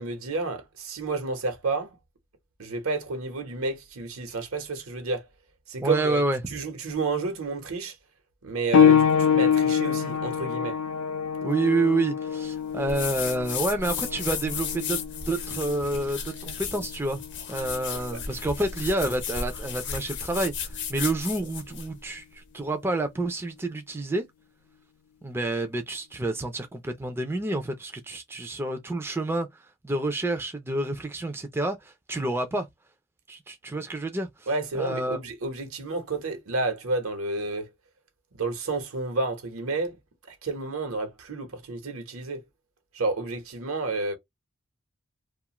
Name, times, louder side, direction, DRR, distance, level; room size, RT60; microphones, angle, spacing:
voice 1, 0.0-2.0 2.6-5.3 5.7-8.0 8.4-10.8 17.9-18.2 34.5-37.7 38.3-40.0 40.3-42.4 42.9-44.2, right 3 dB, 75° right, 1.0 m, -30 dB
voice 2, 5.8-6.4 11.4-17.2 17.5-24.2 25.2-29.5 29.8-32.7 33.3-34.5 34.8-35.2, right 2 dB, 10° right, 0.4 m, -28 dB
sound 1, 8.7-19.0 19.9-20.0 20.8-20.9, left 7 dB, 90° left, 0.3 m, -26 dB
sound 2, 12.9-21.9, left 6 dB, 55° left, 0.7 m, -34 dB
2.4 x 2.4 x 2.9 m
head